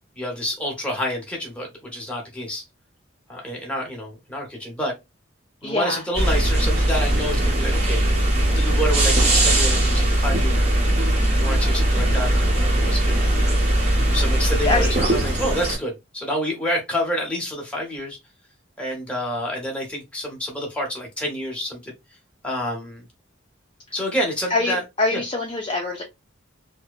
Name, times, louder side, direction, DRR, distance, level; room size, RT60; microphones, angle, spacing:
voice 1, 0.2-2.6 3.3-4.9 5.6-8.0 8.6-10.7 11.4-18.2 18.8-21.9 22.4-23.0 23.9-24.8 25.1-25.2, equal, 5° left, 0.9 m, -28 dB
voice 2, 5.6-6.0 14.6-15.0 24.5-26.0, left 3 dB, 25° left, 0.4 m, -24 dB
sound 1, 6.1-15.8, right 1 dB, 30° right, 1.0 m, -20 dB
2.8 x 2.1 x 2.3 m
head